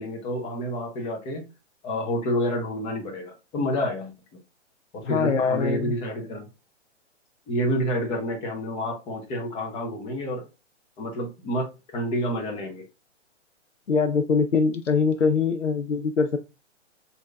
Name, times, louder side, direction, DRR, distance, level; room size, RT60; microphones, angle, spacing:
voice 1, 0.0-1.5 1.8-4.1 4.9-6.5 7.5-10.4 11.0-12.8, equal, 15° left, 0.9 m, -29 dB
voice 2, 5.0-6.0 13.9-16.4, left 5 dB, 90° left, 0.5 m, -23 dB
6.1 x 2.8 x 2.3 m
figure-of-eight pair, 120°, 36 cm